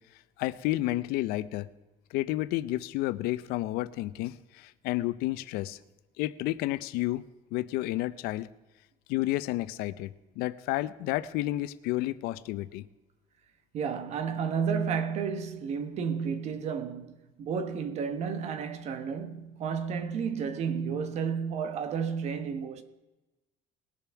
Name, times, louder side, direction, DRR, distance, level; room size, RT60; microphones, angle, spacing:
voice 1, 0.4-1.7 2.1-5.8 6.2-7.2 7.5-8.5 9.1-12.9, left 17 dB, 85° left, 0.6 m, -31 dB
voice 2, 13.7-22.8, right 6 dB, 45° right, 1.1 m, -32 dB
20.5 x 7.0 x 4.6 m
cardioid pair, 170°, 15 cm